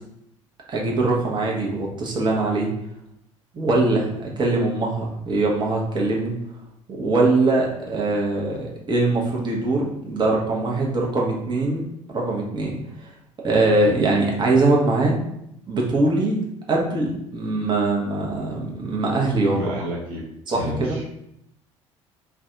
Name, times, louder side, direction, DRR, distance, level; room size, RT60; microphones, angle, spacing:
voice 1, 0.7-2.7 3.5-6.3 6.9-12.8 13.4-15.2 15.7-19.7 20.5-21.1, right 2 dB, 30° right, -2 dB, 0.8 m, -22 dB
voice 2, 19.5-20.2 20.5-21.1, left 1 dB, 60° right, -3 dB, 1.0 m, -31 dB
2.6 x 2.2 x 3.8 m, 0.78 s
figure-of-eight pair, 55°, 16 cm